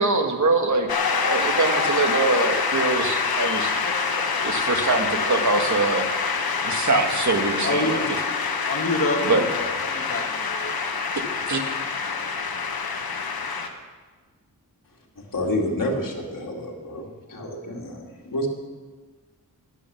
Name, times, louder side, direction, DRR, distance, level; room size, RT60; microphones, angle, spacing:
voice 1, 0.0-3.8 4.4-6.0 6.6-8.0 9.2-9.4 11.5-11.6, right 3 dB, 55° right, 5 dB, 1.6 m, -23 dB
Shout / Cheering / Applause, 0.9-13.7, left 5 dB, 85° left, 1.2 m, -26 dB
voice 2, 3.8-4.2 4.7-4.9 7.6-8.2 8.6-9.6 9.9-10.8, left 1 dB, 40° left, 0 dB, 2.1 m, -28 dB
voice 3, 15.2-18.5, left 1 dB, 65° left, -1 dB, 2.4 m, -29 dB
12.0 x 10.0 x 7.1 m, 1.4 s
wide cardioid pair, 115°, 36 cm